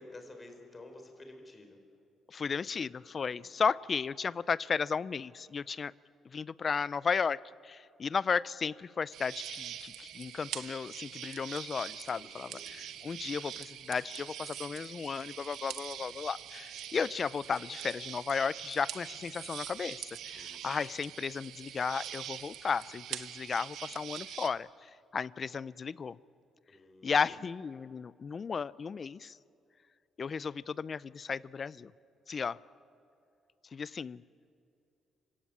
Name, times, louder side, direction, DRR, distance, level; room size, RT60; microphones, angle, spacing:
voice 1, 0.0-1.8 3.2-3.6 12.1-12.7 20.2-20.6 26.7-27.1, left 2 dB, 25° left, 5 dB, 4.7 m, -52 dB
voice 2, 2.3-5.9 6.3-26.2 27.0-29.4 30.2-31.9 32.3-32.6 33.7-34.2, left 5 dB, 40° left, 20 dB, 0.5 m, -34 dB
sound 1, 9.1-24.5, right 11 dB, 80° right, 1.1 m, -44 dB
26.5 x 17.0 x 8.8 m, 2.6 s
cardioid pair, 90°, 0 cm